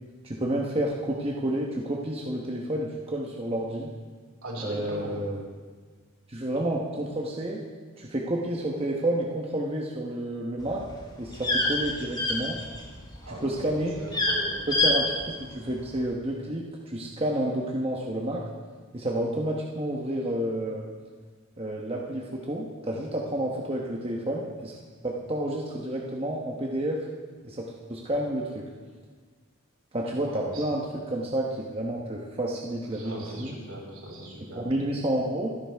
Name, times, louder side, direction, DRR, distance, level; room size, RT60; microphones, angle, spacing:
voice 1, 0.2-3.9 4.6-5.4 6.3-7.6 8.0-10.8 11.2-12.5 13.3-14.0 14.7-18.4 18.9-20.9 21.6-24.8 25.0-27.0 27.4-28.6 29.9-33.5 34.5-35.5, right 1 dB, 25° right, -2 dB, 1.1 m, -30 dB
voice 2, 4.4-5.1 13.2-14.6 30.3-30.6 32.9-34.6, right 1 dB, 75° right, -4 dB, 5.8 m, -39 dB
sound 1, 10.6-13.1 13.3-13.7 14.0-14.4 14.7-14.9 15.2-15.3, left 2 dB, 20° left, 2.0 m, -26 dB
26.0 x 11.0 x 3.5 m, 1.5 s
head